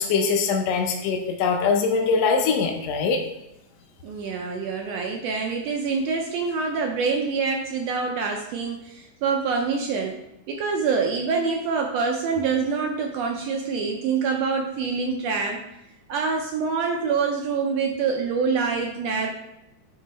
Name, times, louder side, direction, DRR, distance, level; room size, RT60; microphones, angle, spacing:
voice 1, 0.0-3.2, left 5 dB, 70° left, 2 dB, 1.7 m, -22 dB
voice 2, 4.0-10.2 10.5-15.6 16.1-19.3, right 5 dB, 75° right, 2 dB, 1.6 m, -25 dB
9.1 x 3.2 x 4.0 m, 0.89 s
omnidirectional pair, 3.4 m